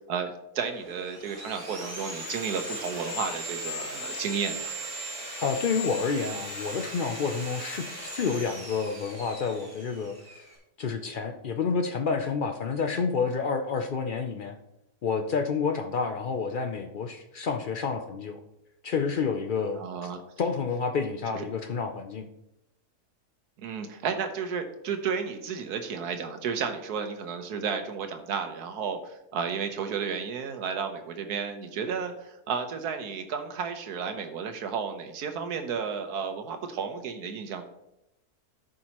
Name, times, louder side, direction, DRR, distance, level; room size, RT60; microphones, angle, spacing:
voice 1, 0.1-4.7 19.8-20.2 21.3-21.4 23.6-37.6, right 6 dB, 90° right, 6 dB, 1.4 m, -32 dB
Sawing, 0.7-10.5, equal, 15° right, 2.6 m, -38 dB
voice 2, 5.4-10.1 10.8-14.5 15.0-18.4 18.8-20.1 20.4-22.2, left 5 dB, 70° left, 6 dB, 0.4 m, -29 dB
13.0 x 5.3 x 2.9 m, 0.88 s
omnidirectional pair, 1.6 m